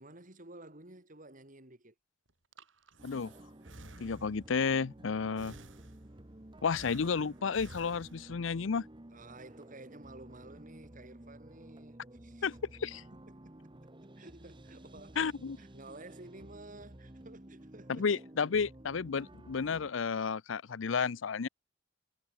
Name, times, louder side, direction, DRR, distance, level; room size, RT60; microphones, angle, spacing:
voice 1, 0.0-1.9 9.1-12.5 13.1-13.6 14.2-18.1, right 2 dB, 45° right, 4.0 m, -52 dB
Breathing, 2.3-4.6 5.4-6.3 6.7-8.5, right 2 dB, 80° right, 7.8 m, -53 dB
sound 1, 3.0-19.9, right 1 dB, 25° right, 1.3 m, -53 dB
voice 2, 4.0-5.6 6.6-8.9 12.4-12.5 12.8-13.0 15.2-15.6 17.9-21.5, left 5 dB, 85° left, 0.6 m, -32 dB
head